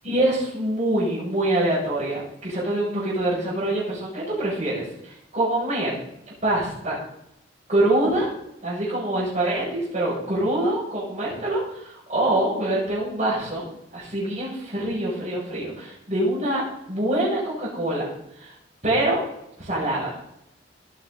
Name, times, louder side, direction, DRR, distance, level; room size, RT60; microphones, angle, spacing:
voice 1, 0.0-5.9 6.4-7.0 7.7-8.3 8.6-13.7 13.9-18.1 18.4-18.5 18.8-19.2 19.6-20.1, right 1 dB, 40° right, -11 dB, 6.8 m, -25 dB
18.5 x 9.9 x 4.0 m, 0.80 s
head